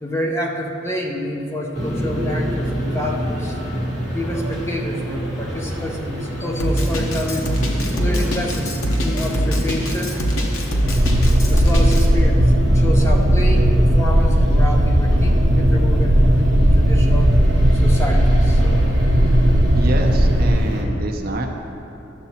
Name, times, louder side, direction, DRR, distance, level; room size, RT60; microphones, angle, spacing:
voice 1, 0.0-3.6 4.1-7.5 8.0-8.8 9.0-10.2 11.5-17.4 17.7-18.6, equal, 15° left, 0 dB, 0.5 m, -28 dB
sound 1, 1.7-20.8, equal, 35° left, 1.3 m, -25 dB
Drum kit, 6.6-12.0, equal, 90° left, 0.9 m, -22 dB
sound 2, 10.8-20.6, equal, 80° right, 0.7 m, -16 dB
voice 2, 19.8-21.5, right 2 dB, 45° right, 2 dB, 0.6 m, -27 dB
11.5 x 6.9 x 2.8 m, 3.0 s
head